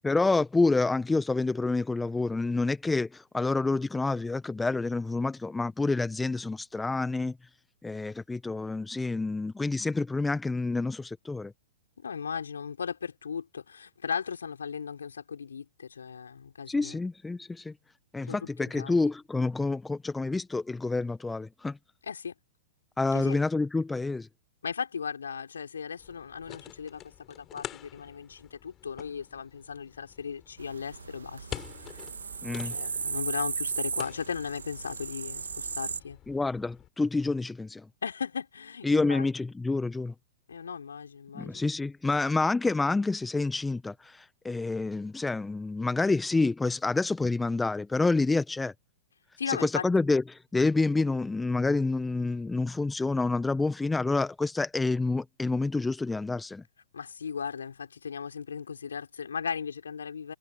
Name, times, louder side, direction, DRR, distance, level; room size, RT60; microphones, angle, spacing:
voice 1, 0.0-7.4 7.8-11.5 16.7-17.7 18.1-21.8 23.0-24.3 32.4-32.7 36.3-37.9 38.8-40.1 41.3-48.7 49.5-56.6, left 3 dB, 10° left, 1.2 m, -28 dB
voice 2, 12.0-17.0 18.3-19.0 22.0-22.3 23.1-23.4 24.6-31.5 31.8-32.1 32.6-36.2 38.0-39.3 40.5-41.6 49.4-49.8 56.9-60.3, left 6 dB, 75° left, 5.6 m, -37 dB
sound 1, 26.0-36.9, left 12 dB, 30° left, 5.4 m, -47 dB
sound 2, 30.6-36.0, right 5 dB, 75° right, 2.2 m, -36 dB
figure-of-eight pair, 105°, 0 cm